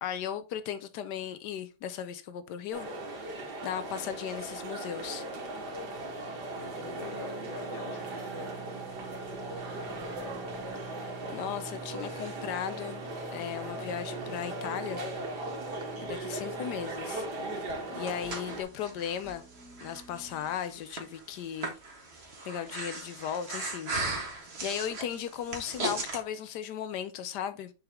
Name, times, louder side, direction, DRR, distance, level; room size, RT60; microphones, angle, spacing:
voice 1, 0.0-2.9 3.1-5.2 11.3-15.0 16.0-17.3 17.9-19.4 19.8-21.7 22.4-24.3 24.6-27.7, left 9 dB, 90° left, 1.3 m, -36 dB
sound 1, 2.7-18.6, right 2 dB, 90° right, 2.1 m, -38 dB
sound 2, 4.5-5.0 5.6-20.6, right 5 dB, 10° left, 0.8 m, -49 dB
voice 2, 6.5-8.6 9.6-10.2, left 3 dB, 50° left, 1.4 m, -45 dB
Breathing, 17.7-26.2, right 2 dB, 40° right, 1.7 m, -38 dB
6.3 x 4.9 x 3.5 m
omnidirectional pair, 1.7 m